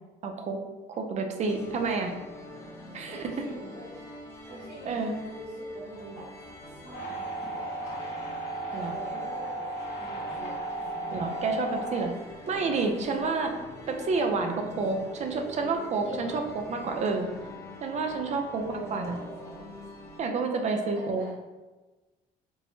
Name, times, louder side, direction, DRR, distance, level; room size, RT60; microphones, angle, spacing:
voice 1, 0.2-0.6 1.0-2.1 2.9-3.3 4.9-5.1 8.7-8.9 11.1-12.1 12.5-13.5 13.9-17.3 17.8-18.6 18.9-19.2 20.2-21.2, right 4 dB, 45° right, 4 dB, 0.5 m, -29 dB
sound 1, 1.5-20.2, left 1 dB, 15° left, 0.6 m, -44 dB
voice 2, 3.1-3.9 4.5-5.0 5.3-6.3 6.6-8.2 8.7-9.7 10.0-11.2 16.0-16.4 18.6-19.6 20.9-21.3, right 1 dB, 70° right, -9 dB, 1.3 m, -43 dB
sound 2, 6.9-12.0, right 2 dB, 80° left, 0.9 m, -35 dB
4.5 x 2.1 x 2.7 m, 1.2 s
cardioid pair, 110°, 17 cm